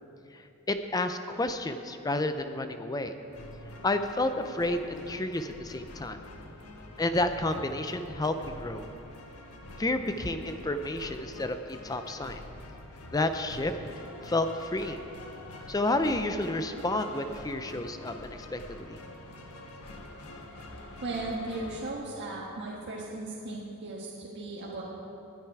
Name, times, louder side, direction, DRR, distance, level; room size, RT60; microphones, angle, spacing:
voice 1, 0.3-3.1 3.8-6.2 7.0-8.9 9.8-12.4 13.1-13.7 14.2-15.0 15.7-19.0, left 2 dB, 15° left, 8 dB, 0.5 m, -30 dB
sound 1, 3.3-21.9, left 1 dB, 75° left, 1.3 m, -46 dB
voice 2, 6.5-7.3 21.0-24.8, right 2 dB, 50° right, -4 dB, 1.5 m, -37 dB
19.5 x 8.9 x 4.7 m, 2.8 s
head